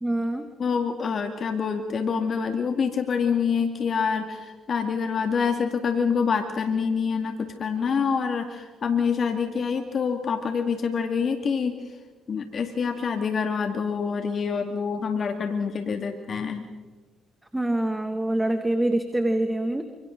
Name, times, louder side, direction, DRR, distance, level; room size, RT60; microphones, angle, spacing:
voice 1, 0.0-0.5 17.5-19.8, right 1 dB, 10° right, 6 dB, 2.3 m, -25 dB
voice 2, 0.6-11.8 12.3-16.6, left 6 dB, 50° left, 5 dB, 2.3 m, -26 dB
29.5 x 26.5 x 4.0 m, 1.4 s
hypercardioid pair, 50°, 0 cm